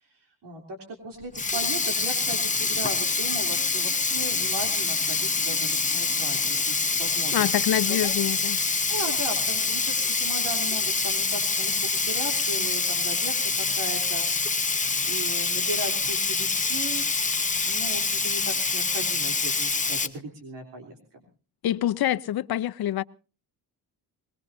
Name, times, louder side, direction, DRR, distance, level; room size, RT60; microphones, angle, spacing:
voice 1, 0.4-7.3 7.9-8.1 8.9-14.8 15.1-17.1 17.6-21.0, right 2 dB, 85° right, 3.5 m, -37 dB
Sink (filling or washing), 1.2-20.1, left 4 dB, 20° left, 1.0 m, -26 dB
voice 2, 7.3-8.6 21.6-23.0, left 12 dB, 65° left, 0.8 m, -26 dB
21.0 x 20.0 x 2.7 m
cardioid pair, 105°, 40 cm